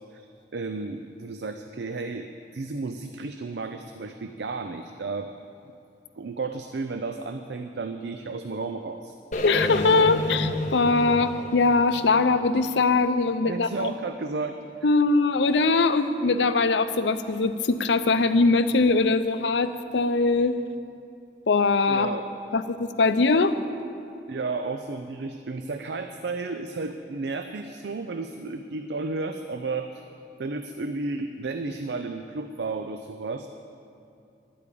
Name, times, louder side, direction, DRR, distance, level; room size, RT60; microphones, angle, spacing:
voice 1, 0.5-5.3 6.2-9.1 13.4-14.6 21.9-22.3 24.3-30.0 30.4-33.5, right 3 dB, 70° right, 7 dB, 0.5 m, -33 dB
sound 1, 9.3-13.4, left 1 dB, 45° left, 1.0 m, -31 dB
voice 2, 9.4-13.9 14.8-20.5 21.5-22.1 22.5-23.5, left 3 dB, 85° left, 11 dB, 0.6 m, -22 dB
11.5 x 8.5 x 8.5 m, 2.6 s
head